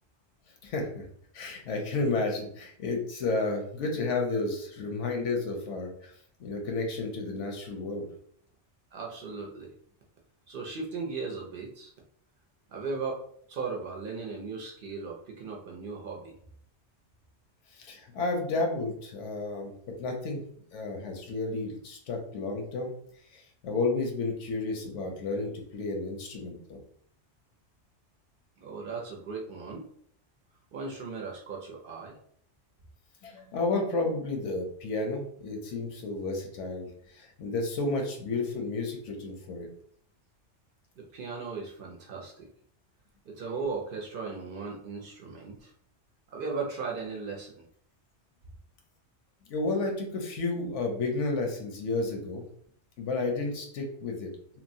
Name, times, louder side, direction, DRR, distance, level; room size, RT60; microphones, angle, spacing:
voice 1, 0.6-1.0 1.3-6.1 6.4-8.1 17.7-19.7 20.0-20.4 20.7-22.9 23.3-26.8 33.2-39.7 49.5-52.4 53.0-54.3, left 3 dB, 85° left, 2 dB, 1.0 m, -32 dB
voice 2, 8.9-9.7 10.5-11.9 12.7-13.2 13.5-16.4 28.6-29.9 30.7-32.1 41.0-42.5 43.3-45.7 46.3-47.7, right 4 dB, 60° right, -1 dB, 0.6 m, -37 dB
2.9 x 2.1 x 2.6 m, 0.63 s
omnidirectional pair, 1.2 m